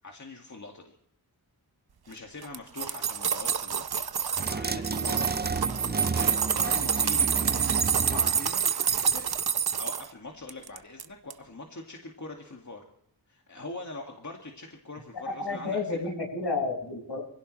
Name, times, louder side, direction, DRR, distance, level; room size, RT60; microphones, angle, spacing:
voice 1, 0.0-1.0 2.1-9.3 9.8-12.9 13.3-15.8, left 2 dB, 45° left, 1 dB, 2.2 m, -43 dB
sound 1, 2.4-4.6 4.9-10.1 10.5-11.0 11.3-11.4, right 7 dB, 70° right, 0.8 m, -27 dB
sound 2, 4.4-9.4, right 4 dB, 25° right, 0.5 m, -32 dB
voice 2, 15.2-17.2, left 3 dB, 75° left, 0 dB, 6.5 m, -31 dB
24.5 x 16.5 x 3.3 m, 0.68 s
wide cardioid pair, 65°, 40 cm